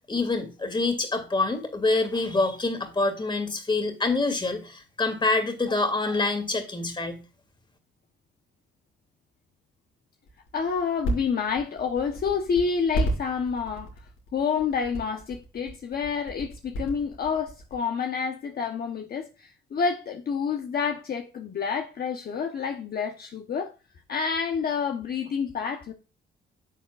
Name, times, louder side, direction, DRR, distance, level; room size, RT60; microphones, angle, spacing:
voice 1, 0.1-7.2, left 3 dB, 25° left, 2.5 m, -26 dB
sound 1, 10.3-17.7, right 1 dB, 90° left, 5.5 m, -31 dB
voice 2, 10.5-13.9 14.3-23.7 24.1-25.9, left 6 dB, 50° left, 1.1 m, -28 dB
10.5 x 7.3 x 2.5 m
cardioid pair, 90°, 20 cm